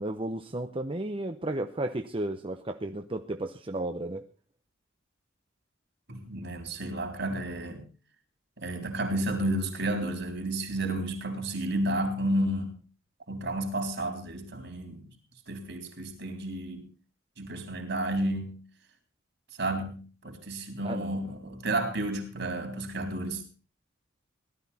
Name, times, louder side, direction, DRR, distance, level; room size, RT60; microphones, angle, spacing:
voice 1, 0.0-4.2 20.8-21.1, right 1 dB, 30° right, 6 dB, 0.8 m, -33 dB
voice 2, 6.1-7.9 8.6-12.7 13.3-15.0 15.5-16.9 17.4-18.6 19.6-23.4, right 1 dB, 60° right, 4 dB, 4.0 m, -31 dB
17.5 x 12.5 x 4.2 m, 0.37 s
head